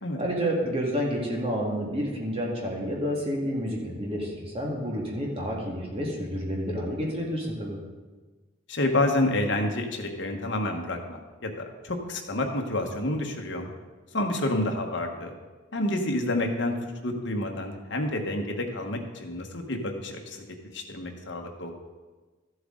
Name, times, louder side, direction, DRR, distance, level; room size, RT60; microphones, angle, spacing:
voice 1, 0.2-7.8, equal, 30° right, -2 dB, 1.9 m, -29 dB
voice 2, 8.7-11.5 11.8-13.7 14.1-15.3 15.7-16.7 17.0-20.4 20.7-21.7, left 1 dB, 65° left, 2 dB, 1.2 m, -29 dB
13.0 x 7.8 x 3.8 m, 1.3 s
head